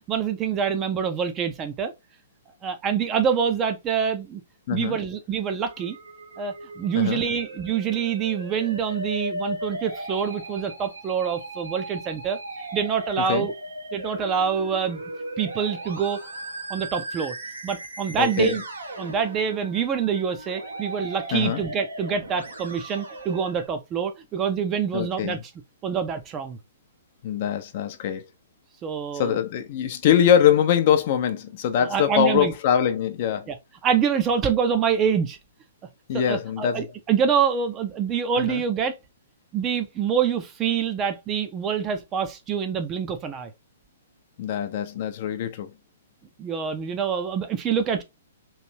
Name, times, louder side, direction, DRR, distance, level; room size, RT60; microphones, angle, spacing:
voice 1, 0.1-1.9 2.6-4.4 4.7-6.0 6.4-12.4 12.7-13.5 13.9-15.0 15.4-16.2 16.7-17.3 17.6-18.6 19.0-25.4 25.8-26.6 28.8-29.4 31.8-32.5 33.5-33.6 33.8-35.4 36.3-38.9 39.5-43.5 46.4-48.0, right 7 dB, 25° right, 0.5 m, -26 dB
voice 2, 4.7-5.0 6.9-7.3 13.2-13.5 18.2-18.5 21.3-21.6 24.9-25.4 27.2-28.2 29.1-33.5 36.1-36.8 38.4-38.6 44.4-45.7, left 9 dB, 45° left, 0.5 m, -23 dB
Musical instrument, 5.7-23.7, right 1 dB, 80° right, 0.9 m, -37 dB
3.1 x 2.6 x 2.8 m
figure-of-eight pair, 120°, 0 cm